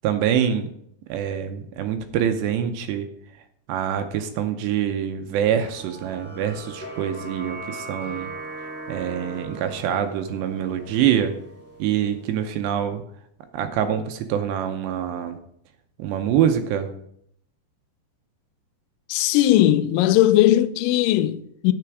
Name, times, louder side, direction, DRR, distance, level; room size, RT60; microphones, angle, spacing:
voice 1, 0.0-0.7 1.1-3.1 3.7-8.3 8.9-11.4 11.8-13.0 13.5-15.4 16.0-16.9, right 9 dB, 80° right, 2.7 m, -25 dB
sound 1, 5.6-12.4, right 2 dB, 15° left, 0.5 m, -39 dB
voice 2, 19.1-21.7, left 13 dB, 85° left, 3.0 m, -18 dB
10.5 x 6.8 x 4.7 m
omnidirectional pair, 5.3 m